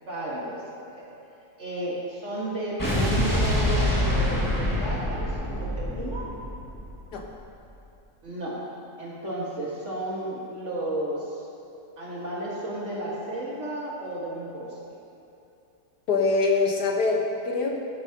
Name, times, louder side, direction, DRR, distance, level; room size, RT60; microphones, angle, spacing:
voice 1, 0.0-1.1 1.6-6.3 8.2-8.7 9.0-11.5 12.0-15.0, right 1 dB, 45° right, -6 dB, 2.0 m, -33 dB
Explosion, 2.8-7.1, left 1 dB, 10° left, 1.7 m, -25 dB
voice 2, 16.1-17.8, left 3 dB, 75° left, 0 dB, 1.8 m, -24 dB
16.5 x 8.8 x 2.9 m, 2.8 s
omnidirectional pair, 1.7 m